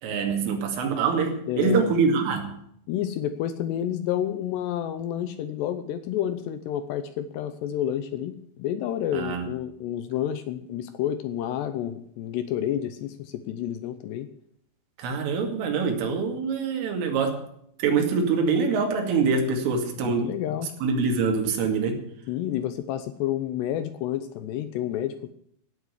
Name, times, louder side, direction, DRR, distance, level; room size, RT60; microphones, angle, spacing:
voice 1, 0.0-2.6 9.1-9.4 15.0-17.4 17.8-20.3 20.8-22.0, right 5 dB, 80° right, 3 dB, 4.9 m, -24 dB
voice 2, 1.5-1.9 2.9-14.3 20.0-20.7 22.3-25.3, left 11 dB, 80° left, 11 dB, 2.5 m, -30 dB
16.5 x 7.3 x 9.8 m, 0.69 s
omnidirectional pair, 5.8 m